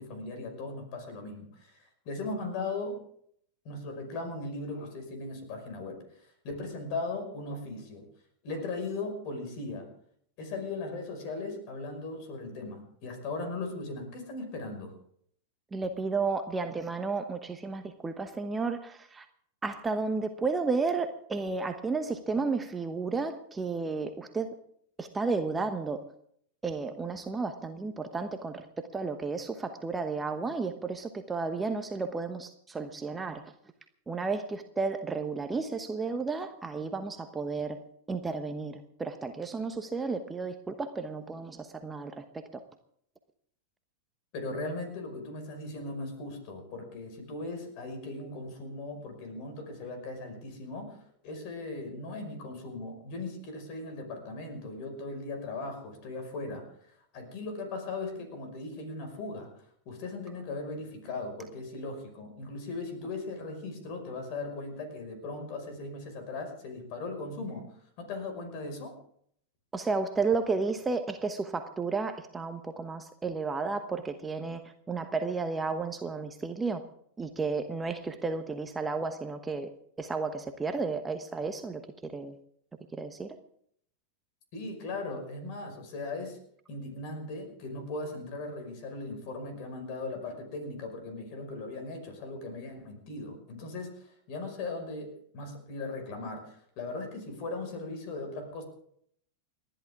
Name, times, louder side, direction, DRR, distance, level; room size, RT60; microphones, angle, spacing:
voice 1, 0.0-3.0 3.6-8.1 8.4-9.9 10.4-14.9 44.3-68.9 84.5-86.4 86.7-98.6, left 3 dB, 45° left, 5 dB, 5.4 m, -38 dB
voice 2, 15.7-19.3 19.6-24.6 25.0-26.0 26.6-33.5 34.1-37.8 38.1-42.6 69.7-76.8 77.2-79.7 80.0-82.4 82.9-83.4, right 4 dB, 15° right, 8 dB, 1.1 m, -32 dB
30.0 x 11.0 x 3.6 m, 0.67 s
figure-of-eight pair, 90°, 0 cm